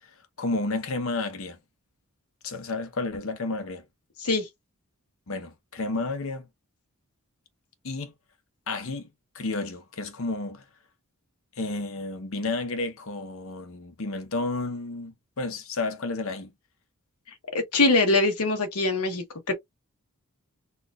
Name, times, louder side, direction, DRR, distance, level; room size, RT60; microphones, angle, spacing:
voice 1, 0.4-1.6 2.4-3.8 5.3-6.4 7.8-8.1 8.7-9.1 9.3-10.6 11.6-16.5, left 3 dB, 65° left, 0.8 m, -31 dB
voice 2, 17.5-19.5, left 2 dB, 85° left, 1.1 m, -23 dB
4.3 x 2.4 x 2.3 m
head